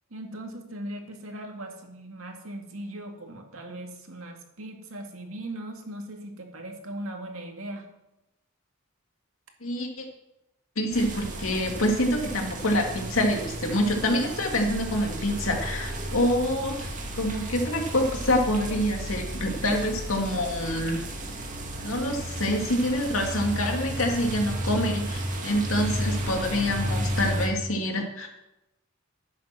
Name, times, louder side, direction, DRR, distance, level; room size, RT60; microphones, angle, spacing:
voice 1, 0.1-7.8, right 1 dB, 90° right, 3 dB, 2.2 m, -39 dB
voice 2, 9.6-10.1 10.8-21.0 21.8-28.3, left 1 dB, 85° left, 2 dB, 2.4 m, -26 dB
sound 1, 10.9-27.5, right 1 dB, 40° right, 2.1 m, -33 dB
11.0 x 8.7 x 6.2 m, 0.92 s
head